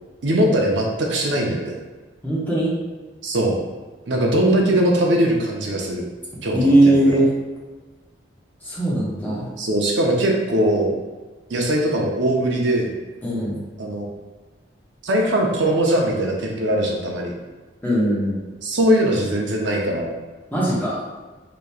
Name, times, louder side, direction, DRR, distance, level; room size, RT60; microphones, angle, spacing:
voice 1, 0.2-1.7 3.2-3.6 4.1-6.0 6.4-6.9 9.6-10.9 11.5-12.9 13.8-14.1 15.0-17.3 18.6-20.1, right 1 dB, 75° right, 0 dB, 0.6 m, -20 dB
voice 2, 2.2-2.7 6.5-7.3 8.6-9.5 13.2-13.6 17.8-18.3 20.5-21.0, right 1 dB, 10° left, -8 dB, 1.1 m, -19 dB
4.9 x 2.9 x 2.3 m, 1.2 s
head